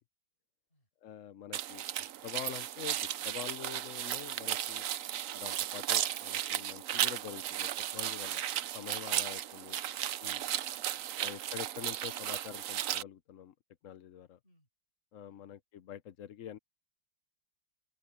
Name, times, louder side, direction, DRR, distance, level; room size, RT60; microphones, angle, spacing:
voice 1, 1.0-4.8 5.3-8.4 8.7-9.8 10.2-10.4 11.2-13.5 13.8-14.4 15.1-16.6, left 10 dB, 65° left, 0.8 m, -46 dB
sound 1, 1.5-13.0, right 11 dB, 85° right, 0.7 m, -35 dB
voice 2, 9.3-11.3 14.4-14.7 15.2-15.6, left 1 dB, 25° left, 8.2 m, -72 dB
open air
omnidirectional pair, 2.2 m